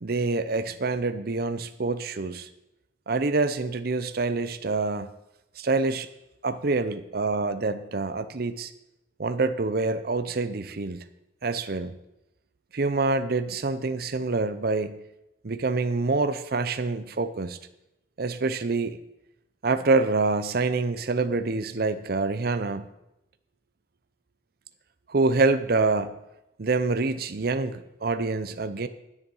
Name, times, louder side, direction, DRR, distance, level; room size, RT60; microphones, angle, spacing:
voice 1, 0.0-2.5 3.1-5.1 5.6-6.1 6.4-8.7 9.2-11.1 11.4-12.0 12.7-15.0 15.4-17.6 18.2-19.0 19.6-22.8 25.1-26.2 26.6-28.9, right 3 dB, 55° right, 11 dB, 0.7 m, -26 dB
10.5 x 9.8 x 5.6 m, 0.88 s
head